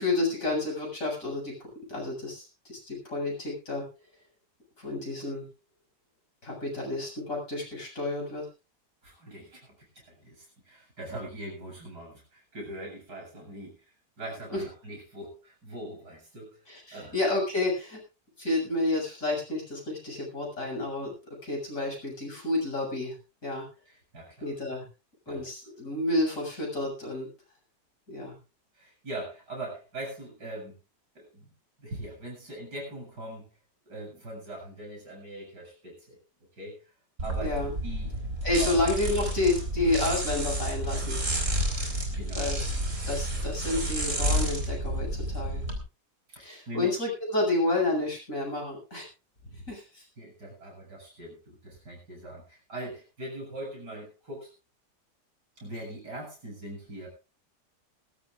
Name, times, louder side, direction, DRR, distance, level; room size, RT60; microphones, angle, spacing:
voice 1, 0.0-1.5 1.9-3.8 4.8-5.5 6.4-8.5 14.5-14.6 16.7-18.0 18.4-21.1 21.4-23.2 23.4-23.6 24.4-24.9 25.3-27.3 28.1-28.4 37.4-37.7 38.4-41.2 42.3-42.6 43.1-45.6 46.4-49.1 49.5-50.0, left 2 dB, 50° left, -1 dB, 7.7 m, -30 dB
voice 2, 9.0-16.6 16.9-17.1 23.9-24.5 25.3-25.4 28.7-30.8 31.1-31.5 31.8-33.5 33.8-36.2 36.5-36.9 37.2-38.1 38.6-38.7 41.8-42.4 46.3-46.9 50.2-54.5 55.6-57.1, right 1 dB, 70° right, 0 dB, 8.3 m, -41 dB
sound 1, 37.2-45.8, right 1 dB, 45° right, 4.4 m, -30 dB
20.0 x 16.5 x 2.5 m, 0.31 s
omnidirectional pair, 1.9 m